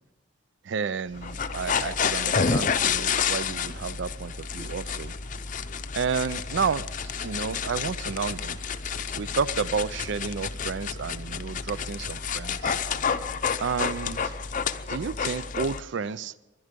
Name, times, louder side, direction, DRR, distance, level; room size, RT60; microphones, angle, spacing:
voice 1, 0.6-5.2 5.9-8.6 9.2-12.8 13.6-14.3 14.9-16.4, right 5 dB, 60° right, 0.4 m, -31 dB
sound 1, 1.1-15.8, left 6 dB, 40° left, 0.6 m, -30 dB
22.0 x 11.5 x 5.2 m
head